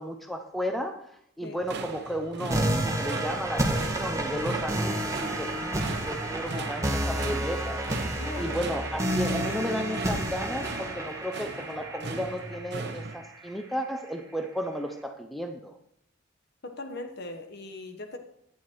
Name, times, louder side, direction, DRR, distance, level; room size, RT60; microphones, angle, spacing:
voice 1, 0.0-15.8, equal, ahead, 5 dB, 0.7 m, -34 dB
sound 1, 1.6-13.2, right 3 dB, 55° right, 1.0 m, -39 dB
sound 2, 2.5-13.5, right 1 dB, 15° right, 1.4 m, -30 dB
voice 2, 8.1-8.6 16.6-18.2, left 2 dB, 55° left, 6 dB, 1.3 m, -39 dB
11.5 x 9.4 x 4.6 m, 0.75 s
head